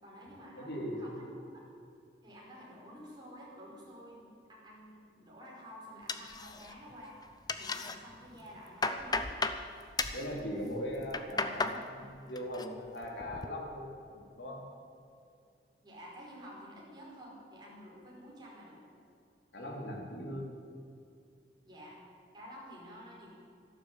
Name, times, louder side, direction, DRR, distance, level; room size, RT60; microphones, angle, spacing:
voice 1, 0.0-1.5 2.2-7.2 7.5-9.3 15.8-18.8 21.6-22.0 22.3-23.3, equal, 25° right, -5 dB, 5.1 m, -51 dB
voice 2, 0.6-1.1 10.1-14.6 19.5-20.5, equal, 90° left, -2 dB, 3.9 m, -39 dB
sound 1, 6.1-6.9 7.2-8.0 8.4-9.6 10.0-10.3 10.9-11.8 12.1-12.7 13.0-13.5, left 3 dB, 25° left, 0.7 m, -34 dB
13.0 x 12.5 x 8.7 m, 2.4 s
head